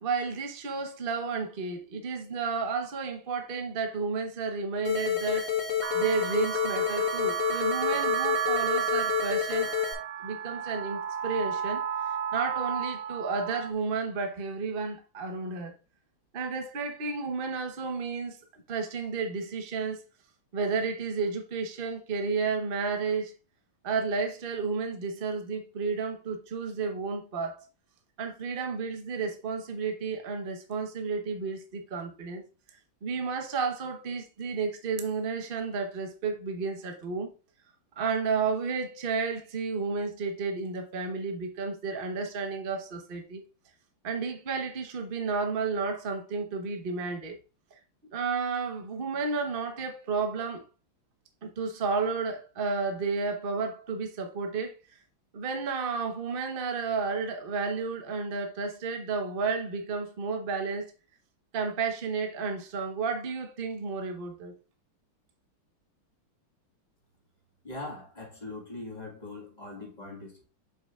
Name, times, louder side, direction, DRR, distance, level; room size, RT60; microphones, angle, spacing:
voice 1, 0.0-5.5 5.9-9.7 10.2-15.7 16.3-20.0 20.5-23.3 23.8-27.6 28.2-32.4 33.0-37.3 38.0-43.4 44.0-47.4 48.1-50.7 51.4-54.8 55.3-60.9 61.5-64.5, right 4 dB, 35° right, 0.9 m, -32 dB
sound 1, 4.8-9.9, left 9 dB, 60° left, 2.3 m, -29 dB
sound 2, 5.8-13.7, right 9 dB, 75° right, 0.9 m, -32 dB
voice 2, 67.6-70.4, left 2 dB, 20° left, 1.8 m, -41 dB
7.4 x 5.8 x 2.4 m
omnidirectional pair, 2.4 m